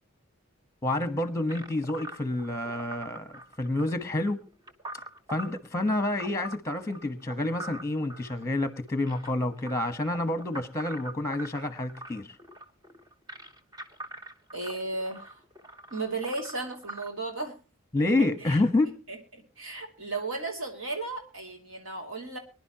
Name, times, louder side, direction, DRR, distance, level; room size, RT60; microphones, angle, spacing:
voice 1, 0.8-4.4 5.3-12.3 17.9-18.9, left 2 dB, 15° left, 1.3 m, -28 dB
sound 1, 1.5-17.1, right 1 dB, 20° right, 1.0 m, -44 dB
voice 2, 14.5-15.4 15.9-17.6 18.2-18.6 19.1-22.4, right 3 dB, 70° right, 2.8 m, -35 dB
24.0 x 11.0 x 2.9 m
head